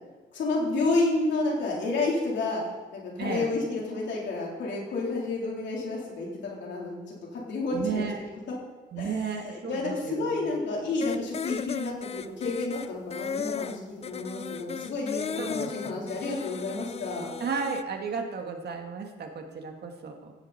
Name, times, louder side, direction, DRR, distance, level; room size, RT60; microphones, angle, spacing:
voice 1, 0.3-2.6 2.9-8.1 8.5-8.6 9.0-17.3, left 3 dB, 65° left, -3 dB, 3.7 m, -30 dB
voice 2, 3.2-3.6 7.7-8.2 8.9-10.5 15.4-16.1 17.4-20.3, right 5 dB, 55° right, 4 dB, 1.7 m, -33 dB
sound 1, 11.0-17.8, left 6 dB, 30° left, 0.5 m, -35 dB
15.5 x 7.7 x 4.3 m, 1.3 s
cardioid pair, 90°, 20 cm